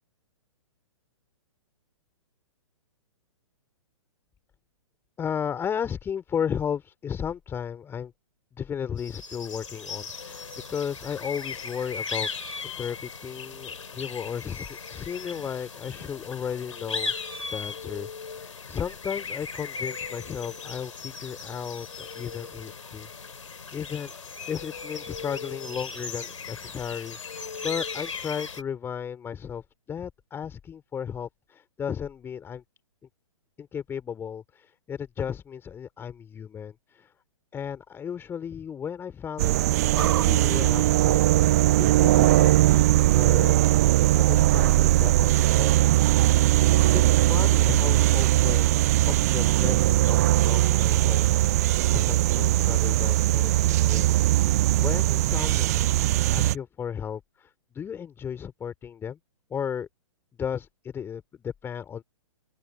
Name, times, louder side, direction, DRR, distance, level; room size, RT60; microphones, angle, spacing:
voice 1, 5.2-8.1 8.6-10.4 10.7-12.3 12.6-18.1 18.4-23.3 23.7-24.1 24.5-32.6 33.6-37.1 37.5-41.5 41.8-43.6 44.1-45.7 46.9-48.7 49.1-51.4 51.9-54.1 54.5-57.5 57.7-59.2 59.5-59.9 60.4-62.0, left 8 dB, 15° left, 3.3 m, -35 dB
sound 1, 9.0-28.6, left 5 dB, 65° left, 3.5 m, -37 dB
sound 2, 39.4-56.6, right 15 dB, 30° right, 0.3 m, -20 dB
sound 3, 39.9-56.4, right 12 dB, 45° right, 2.0 m, -43 dB
open air
figure-of-eight pair, 120°, 17 cm